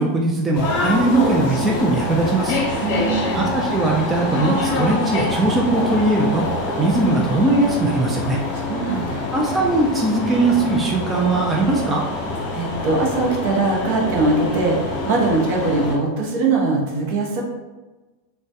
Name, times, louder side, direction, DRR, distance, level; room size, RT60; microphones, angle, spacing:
voice 1, 0.0-2.6 3.3-8.4 9.3-12.0, right 2 dB, 20° right, -2 dB, 0.4 m, -20 dB
sound 1, 0.5-15.9, left 2 dB, 60° left, 0.6 m, -25 dB
voice 2, 2.8-3.3 8.6-9.3 12.5-14.8 15.1-17.4, right 3 dB, 60° right, 0 dB, 0.6 m, -21 dB
2.1 x 2.1 x 2.7 m, 1.2 s
hypercardioid pair, 100°, 0 cm